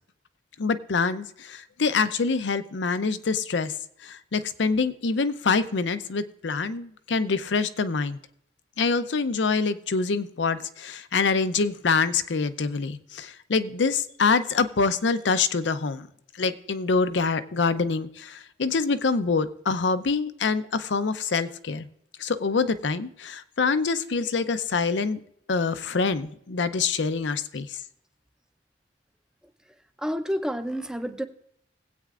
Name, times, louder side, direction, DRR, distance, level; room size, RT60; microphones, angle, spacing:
voice 1, 0.6-3.7 4.0-8.2 8.8-16.1 16.4-21.9 22.2-25.2 25.5-27.8, left 4 dB, 70° left, 12 dB, 0.6 m, -25 dB
voice 2, 30.0-31.3, equal, 5° right, 8 dB, 0.6 m, -29 dB
20.5 x 8.5 x 2.5 m, 0.71 s
head